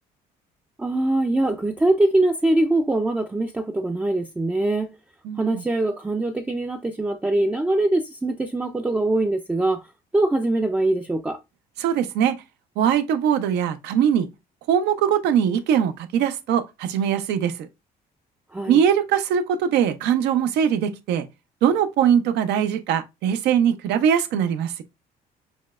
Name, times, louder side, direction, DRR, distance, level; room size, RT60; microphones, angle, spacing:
voice 1, 0.8-4.9 5.4-9.8 10.1-11.4 18.5-18.8, right 2 dB, 10° right, 0.4 m, -22 dB
voice 2, 5.2-5.6 11.8-12.4 12.8-14.3 14.7-17.7 18.7-21.3 21.6-24.8, right 8 dB, 85° right, 0.6 m, -21 dB
6.1 x 2.2 x 2.3 m
cardioid pair, 110°, 17 cm